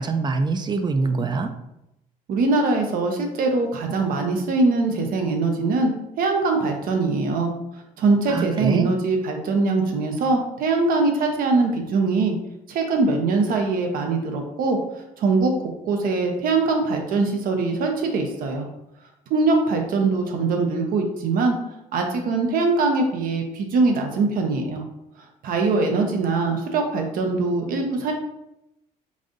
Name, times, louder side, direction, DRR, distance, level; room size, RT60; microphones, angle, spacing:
voice 1, 0.0-1.5 8.3-8.9, right 3 dB, 25° right, 8 dB, 0.5 m, -24 dB
voice 2, 2.3-7.5 8.0-12.3 12.7-14.8 15.2-15.5 15.8-18.7 19.3-21.6 21.9-24.8 25.4-28.1, right 3 dB, 65° right, 3 dB, 0.8 m, -22 dB
5.2 x 2.6 x 3.8 m, 0.87 s
cardioid pair, 90°, 16 cm